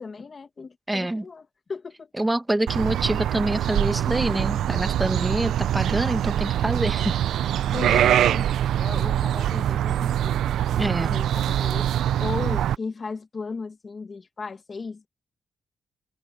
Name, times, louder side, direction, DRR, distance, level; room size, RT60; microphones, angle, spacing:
voice 1, 0.0-2.1 7.7-8.5 8.8-10.4 10.8-15.1, left 4 dB, 30° left, 1.7 m, -36 dB
voice 2, 0.9-1.2 2.2-7.2 7.9-8.0 10.8-11.2, right 1 dB, 10° right, 1.6 m, -26 dB
sound 1, 2.7-12.8, right 11 dB, 90° right, 0.4 m, -24 dB
wide cardioid pair, 165°, 0 cm